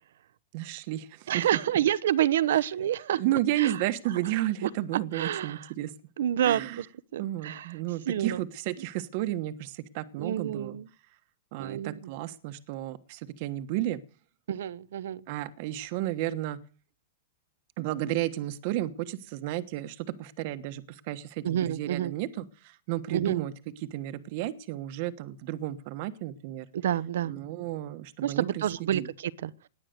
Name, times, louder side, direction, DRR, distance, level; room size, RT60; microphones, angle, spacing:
voice 1, 0.5-1.6 2.5-2.6 3.2-5.9 6.4-6.8 7.2-10.8 11.5-14.0 15.3-16.6 17.8-26.7 27.3-29.1, right 14 dB, 45° right, 1.2 m, -32 dB
voice 2, 1.3-3.2 3.6-3.8 4.6-4.7 5.1-5.6 6.2-6.8 7.1-7.7 8.1-8.4 10.2-10.9 11.6-11.9 14.5-15.2 21.4-22.1 23.1-23.5 26.7-27.3 28.2-29.5, right 11 dB, 80° right, 0.9 m, -28 dB
18.5 x 11.0 x 6.7 m
supercardioid pair, 160°, 0 cm